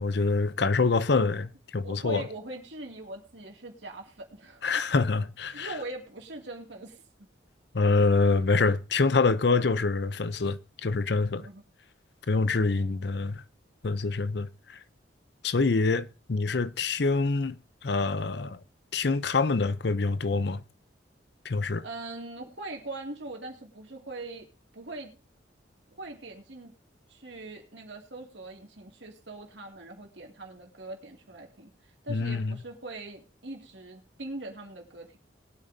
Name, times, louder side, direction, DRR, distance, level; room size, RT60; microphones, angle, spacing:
voice 1, 0.0-2.2 4.6-5.8 7.7-11.5 12.3-13.4 13.8-14.8 15.4-17.6 17.8-18.6 18.9-20.6 21.4-21.8 32.1-32.5, left 3 dB, 60° left, 0.6 m, -26 dB
voice 2, 1.8-4.6 5.5-7.0 10.9-11.0 11.4-11.6 12.6-12.9 21.8-24.5 24.7-25.1 25.9-26.7 27.1-35.2, right 2 dB, 70° right, 2.5 m, -41 dB
21.0 x 8.6 x 2.8 m
head